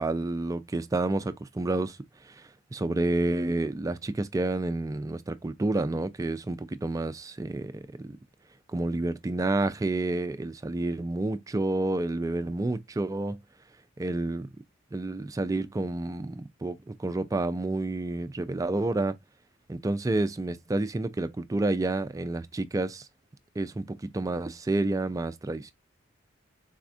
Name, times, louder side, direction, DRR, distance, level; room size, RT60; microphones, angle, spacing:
voice 1, 0.0-2.0 2.2-8.2 8.7-13.4 14.0-14.5 14.9-19.1 19.7-23.1 23.6-25.7, right 2 dB, 15° right, 0.3 m, -29 dB
4.2 x 2.4 x 2.4 m
head